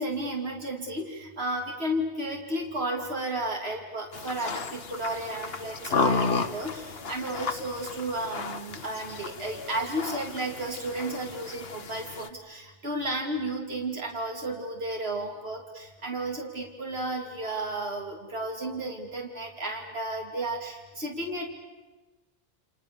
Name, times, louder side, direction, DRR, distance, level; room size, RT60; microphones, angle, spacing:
voice 1, 0.0-21.5, right 1 dB, 80° right, 0 dB, 3.3 m, -33 dB
sound 1, 4.1-12.3, left 4 dB, 70° left, 1.5 m, -33 dB
30.0 x 28.0 x 7.0 m, 1.2 s
omnidirectional pair, 1.0 m